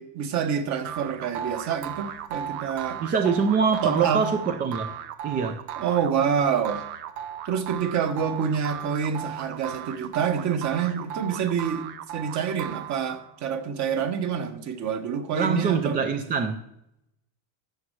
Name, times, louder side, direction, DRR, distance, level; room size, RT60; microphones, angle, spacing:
voice 1, 0.0-3.0 3.8-4.3 5.8-6.8 7.4-11.9 12.1-16.0, right 7 dB, 35° right, 1.1 m, -27 dB
sound 1, 0.8-13.4, right 9 dB, 80° right, 1.0 m, -36 dB
voice 2, 3.0-4.9 5.2-5.6 15.4-16.6, right 5 dB, 20° right, 0.3 m, -24 dB
13.0 x 8.6 x 3.2 m
cardioid pair, 150°, 47 cm